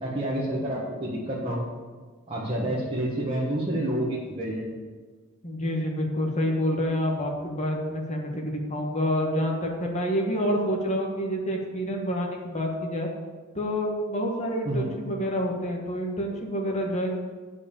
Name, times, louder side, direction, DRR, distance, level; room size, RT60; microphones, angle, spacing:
voice 1, 0.0-1.6 2.3-4.8 14.6-14.9, right 1 dB, 25° right, -6 dB, 1.5 m, -29 dB
voice 2, 5.4-13.1 13.5-17.1, equal, 35° left, 0 dB, 1.6 m, -28 dB
9.5 x 5.1 x 7.3 m, 1.4 s
head